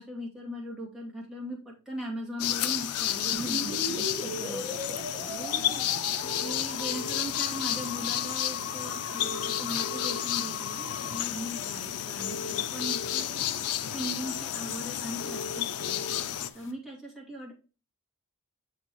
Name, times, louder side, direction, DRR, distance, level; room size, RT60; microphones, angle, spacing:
voice 1, 0.0-5.1 6.4-17.5, equal, ahead, -4 dB, 2.3 m, -39 dB
sound 1, 2.4-16.5, left 11 dB, 80° left, 0.5 m, -32 dB
sound 2, 3.3-11.2, left 1 dB, 20° right, 1.1 m, -39 dB
voice 2, 5.2-6.6 11.0-11.5 15.2-15.4, equal, 15° left, 0 dB, 0.8 m, -47 dB
sound 3, 6.1-16.7, left 2 dB, 60° left, 0.9 m, -44 dB
6.8 x 4.3 x 4.5 m, 0.34 s
head